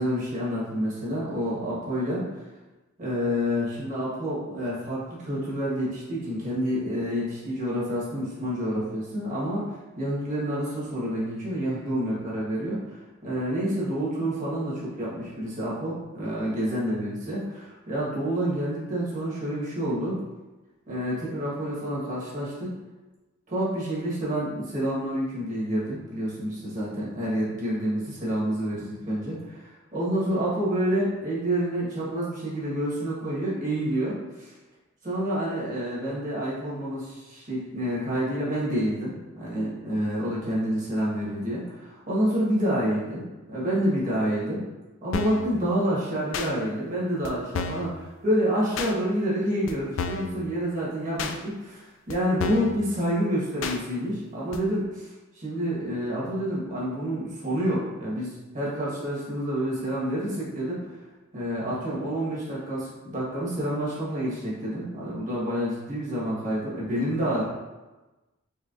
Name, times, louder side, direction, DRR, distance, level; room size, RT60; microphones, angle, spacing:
voice 1, 0.0-2.4 3.0-20.2 20.9-22.7 23.5-34.5 35.0-44.6 45.0-51.2 51.4-55.1 55.3-61.0 61.3-67.4, equal, 40° right, -7 dB, 1.3 m, -28 dB
sound 1, 45.1-45.5 46.3-46.5 47.2-47.3 47.5-47.9 48.8-48.9 49.7-49.8 50.0-50.3 51.2-51.3 52.1-52.2 52.4-52.7 53.6-53.8 54.5-54.6, left 5 dB, 70° left, 0.3 m, -30 dB
4.4 x 3.0 x 2.5 m, 1.1 s
head